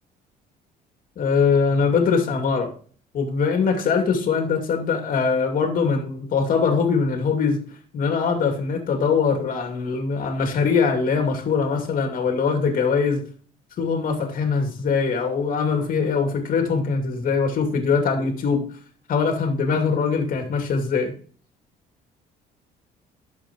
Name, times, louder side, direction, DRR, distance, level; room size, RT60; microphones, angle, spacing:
voice 1, 1.2-2.7 3.1-7.6 7.9-13.2 13.8-18.6 19.1-21.1, left 5 dB, 55° left, 4 dB, 2.5 m, -22 dB
11.5 x 7.5 x 3.1 m, 0.43 s
cardioid pair, 110°, 17 cm